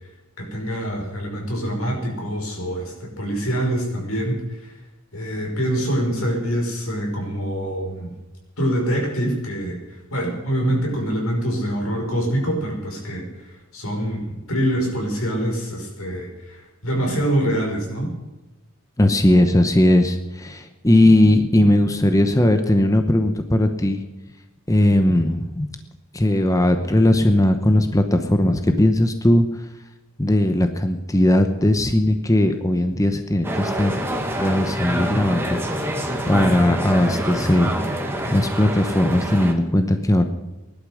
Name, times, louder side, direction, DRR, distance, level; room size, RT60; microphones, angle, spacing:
voice 1, 0.4-4.7 5.1-8.1 8.6-18.1, right 1 dB, 85° left, 0 dB, 5.5 m, -25 dB
voice 2, 19.0-24.0 24.7-25.7 26.1-29.5 30.2-34.0 34.4-35.9 36.3-37.8 38.2-40.2, left 1 dB, 15° left, 7 dB, 0.9 m, -18 dB
sound 1, 33.4-39.5, equal, 10° right, 1.8 m, -26 dB
18.0 x 11.5 x 6.4 m, 1.1 s
head